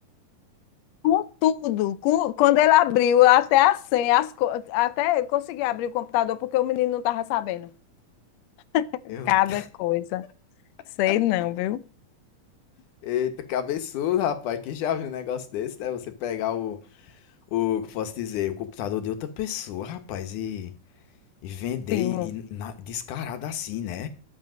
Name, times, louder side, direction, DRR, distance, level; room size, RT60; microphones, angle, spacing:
voice 1, 1.0-7.7 8.7-10.2 11.0-11.8 21.9-22.3, left 14 dB, 75° left, 1.7 m, -22 dB
voice 2, 9.1-9.7 11.1-11.2 13.0-20.7 21.4-24.1, left 10 dB, 90° left, 2.7 m, -30 dB
11.5 x 8.5 x 6.2 m
omnidirectional pair, 3.5 m